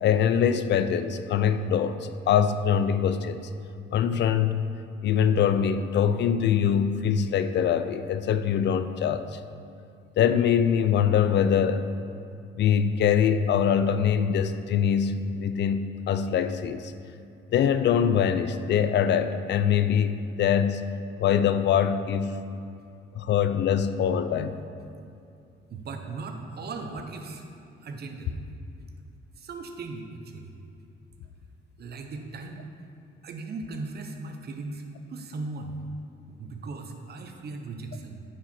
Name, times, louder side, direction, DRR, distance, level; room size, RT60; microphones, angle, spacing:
voice 1, 0.0-2.0 2.3-3.5 3.9-4.7 5.0-9.4 10.2-11.9 12.6-16.9 17.5-20.8 21.2-22.4 23.1-24.6, left 8 dB, 60° left, 10 dB, 0.4 m, -23 dB
voice 2, 25.7-28.4 28.8-28.9 29.4-30.5 31.8-32.7 33.2-35.8 36.3-38.2, right 3 dB, 55° right, 4 dB, 0.8 m, -38 dB
8.9 x 4.8 x 4.3 m, 2.6 s
cardioid pair, 90°, 20 cm